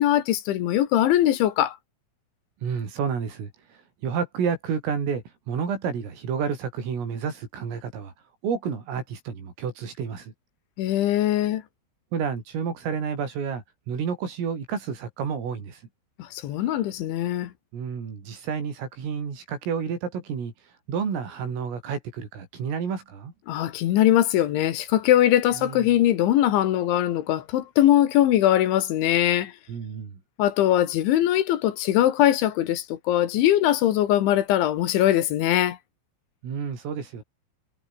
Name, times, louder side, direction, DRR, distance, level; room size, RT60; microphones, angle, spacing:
voice 1, 0.0-1.8 10.8-11.6 16.2-17.5 23.5-29.5 30.4-35.8, left 12 dB, 70° left, 3.9 m, -21 dB
voice 2, 2.6-8.1 8.4-10.3 12.1-15.8 17.7-20.5 20.9-23.3 25.6-26.0 29.7-30.2 36.4-37.2, right 6 dB, 90° right, 8.3 m, -30 dB
omnidirectional pair, 5.7 m